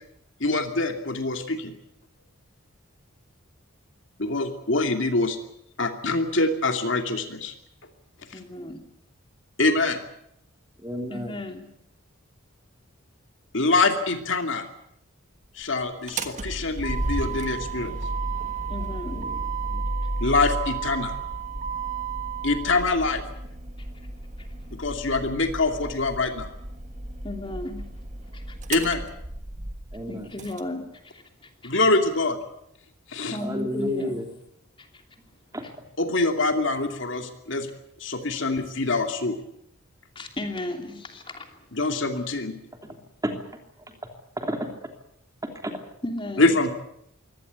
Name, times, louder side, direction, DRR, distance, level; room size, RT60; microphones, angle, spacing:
voice 1, 0.4-1.7 4.2-5.4 5.8-7.5 9.6-10.0 13.5-14.6 15.6-18.0 20.2-21.1 22.4-23.2 24.7-26.5 28.7-29.0 31.6-32.4 33.1-33.4 36.0-37.7 38.0-39.4 41.7-42.6 46.4-46.7, left 3 dB, 60° left, 5 dB, 2.6 m, -24 dB
voice 2, 8.3-8.8 11.1-11.7 18.7-19.3 24.4-24.5 27.2-27.9 28.3-28.6 30.1-31.9 33.3-34.2 34.8-35.0 40.1-41.5 46.0-46.5, left 1 dB, 25° left, 4 dB, 2.9 m, -35 dB
voice 3, 10.8-11.4 19.1-19.9 29.9-30.3 33.4-34.3 35.5-35.6 42.8-43.6 43.9-44.0 44.4-44.7 45.6-45.8, equal, 15° right, 4 dB, 3.0 m, -32 dB
Motor vehicle (road), 16.1-30.6, right 3 dB, 35° right, 1.5 m, -32 dB
24.0 x 18.0 x 8.3 m, 0.75 s
head